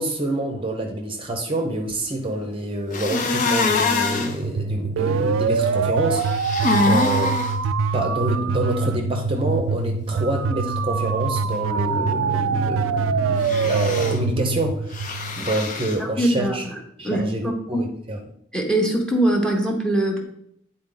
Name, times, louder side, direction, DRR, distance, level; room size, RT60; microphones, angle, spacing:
voice 1, 0.0-7.4 7.9-16.6 17.0-18.2, right 1 dB, 25° right, 2 dB, 0.7 m, -27 dB
sound 1, 2.9-4.3 6.1-7.5 13.4-14.2 14.9-16.0, left 3 dB, 40° left, 0.7 m, -24 dB
sound 2, 3.9-15.8, right 5 dB, 70° right, 0.3 m, -24 dB
voice 2, 16.0-16.8 17.0-17.8 18.5-20.2, right 1 dB, 5° left, 1 dB, 0.8 m, -22 dB
9.2 x 4.1 x 3.8 m, 0.71 s
head